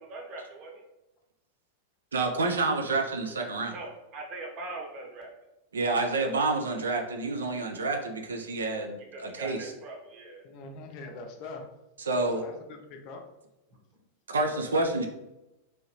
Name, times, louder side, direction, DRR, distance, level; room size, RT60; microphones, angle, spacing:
voice 1, 0.1-0.8 3.7-5.3 9.1-10.4 13.7-13.8, right 2 dB, 35° right, 0 dB, 0.8 m, -41 dB
voice 2, 2.1-3.7 5.7-9.7 12.0-12.4 14.3-15.1, right 3 dB, 70° right, 3 dB, 0.4 m, -28 dB
voice 3, 10.4-11.7 12.3-13.3, left 3 dB, 40° left, 4 dB, 0.5 m, -43 dB
3.1 x 2.7 x 3.0 m, 0.96 s
figure-of-eight pair, 90°, 0 cm